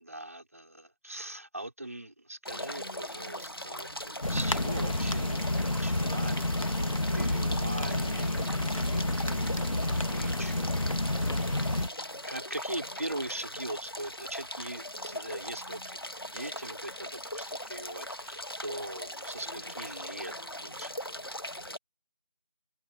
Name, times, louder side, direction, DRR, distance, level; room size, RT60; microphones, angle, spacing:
voice 1, 0.0-10.8 11.7-21.2, right 1 dB, 20° right, 3.7 m, -41 dB
sound 1, 2.5-21.8, left 1 dB, 35° left, 2.0 m, -40 dB
sound 2, 4.2-11.9, left 1 dB, 50° left, 1.6 m, -29 dB
open air
figure-of-eight pair, 180°, 21 cm